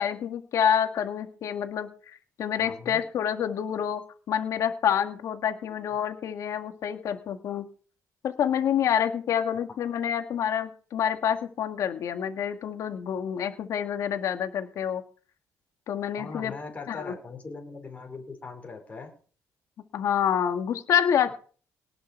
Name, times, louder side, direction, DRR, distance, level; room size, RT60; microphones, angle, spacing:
voice 1, 0.0-4.0 4.3-7.7 8.2-15.0 15.9-16.5 16.9-17.1 19.9-21.3, left 8 dB, 65° left, 7 dB, 1.9 m, -27 dB
voice 2, 2.6-3.0 5.6-5.7 16.2-19.1, left 4 dB, 25° left, 2 dB, 4.6 m, -40 dB
18.5 x 6.9 x 4.5 m, 0.40 s
cardioid pair, 115°, 6 cm